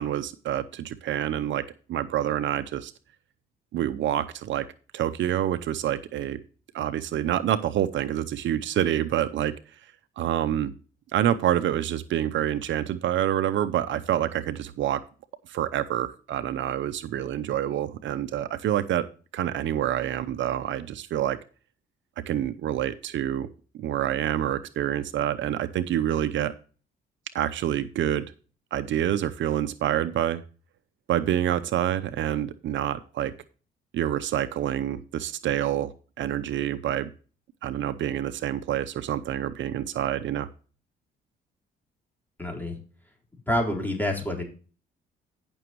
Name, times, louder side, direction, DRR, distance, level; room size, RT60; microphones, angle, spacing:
voice 1, 0.0-1.6 1.9-2.9 3.7-4.7 4.9-6.4 6.7-9.5 10.2-10.7 11.1-15.0 15.5-19.1 19.3-21.4 22.3-23.5 23.7-26.5 27.3-28.2 28.7-30.4 31.1-33.3 33.9-37.1 37.6-40.5, right 11 dB, 70° right, 12 dB, 0.7 m, -27 dB
voice 2, 42.4-42.8 43.5-44.4, left 1 dB, 10° left, 0 dB, 4.1 m, -27 dB
15.5 x 6.2 x 3.0 m, 0.38 s
cardioid pair, 90°, 20 cm